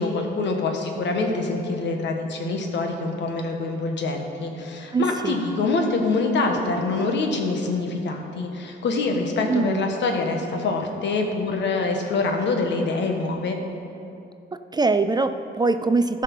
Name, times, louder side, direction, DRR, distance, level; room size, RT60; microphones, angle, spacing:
voice 1, 0.0-13.6, left 3 dB, 65° left, 3 dB, 1.4 m, -25 dB
voice 2, 4.9-5.4 9.5-9.9 14.7-16.2, right 3 dB, 20° right, 10 dB, 0.4 m, -22 dB
13.5 x 5.5 x 5.5 m, 2.7 s
cardioid pair, 90°, 20 cm